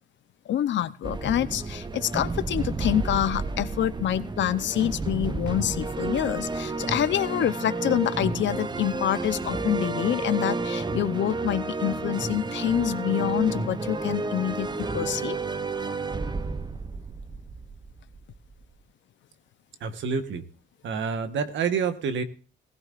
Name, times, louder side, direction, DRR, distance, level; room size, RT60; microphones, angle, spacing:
voice 1, 0.5-15.4, left 11 dB, 65° left, 14 dB, 0.8 m, -27 dB
sound 1, 1.0-18.7, right 3 dB, 20° right, 0.6 m, -31 dB
voice 2, 19.8-20.4 20.8-22.2, right 6 dB, 70° right, 10 dB, 1.3 m, -28 dB
18.0 x 16.0 x 2.5 m, 0.38 s
cardioid pair, 90°, 20 cm